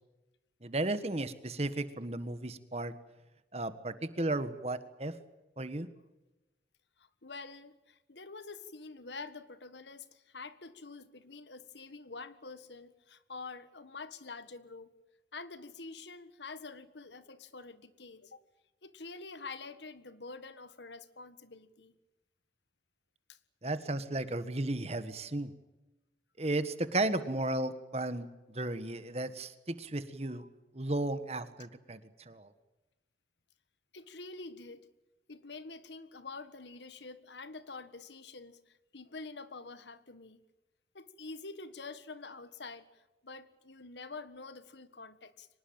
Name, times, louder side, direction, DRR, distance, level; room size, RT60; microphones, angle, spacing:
voice 1, 0.6-2.9 3.5-5.1 5.6-5.9 23.6-25.5 26.4-30.4 30.7-32.0 32.3-32.5, right 2 dB, 35° right, 12 dB, 1.5 m, -34 dB
voice 2, 7.0-15.0 15.3-18.4 18.8-21.9 23.3-23.4 30.3-30.5 33.9-34.9 35.3-40.4 40.9-45.5, left 3 dB, 80° left, 13 dB, 1.6 m, -47 dB
24.5 x 20.0 x 9.0 m, 1.1 s
head